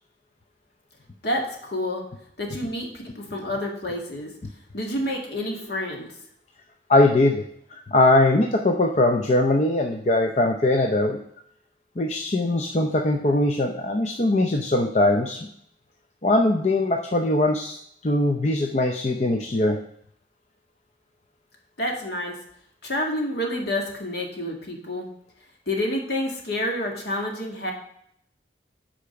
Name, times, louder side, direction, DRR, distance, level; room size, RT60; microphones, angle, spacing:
voice 1, 1.2-2.0 2.4-4.3 4.7-6.1 21.8-22.4 22.8-25.1 25.7-27.7, left 1 dB, 60° left, 0 dB, 2.0 m, -28 dB
voice 2, 6.9-7.4 7.9-11.2 12.0-15.5 16.2-17.8 18.0-19.8, left 2 dB, 35° left, 3 dB, 0.6 m, -21 dB
8.4 x 5.1 x 5.8 m, 0.69 s
head